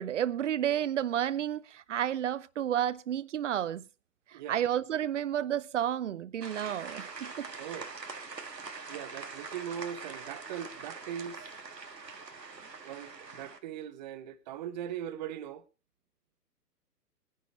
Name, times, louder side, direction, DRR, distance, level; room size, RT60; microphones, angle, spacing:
voice 1, 0.0-3.8 4.3-7.5, right 10 dB, 50° right, 0.7 m, -31 dB
voice 2, 4.3-4.6 7.6-8.0 8.9-11.5 12.8-15.6, right 9 dB, 25° right, 1.0 m, -40 dB
sound 1, 6.4-13.6, right 4 dB, 90° right, 1.9 m, -44 dB
22.5 x 10.5 x 3.2 m
figure-of-eight pair, 135°, 48 cm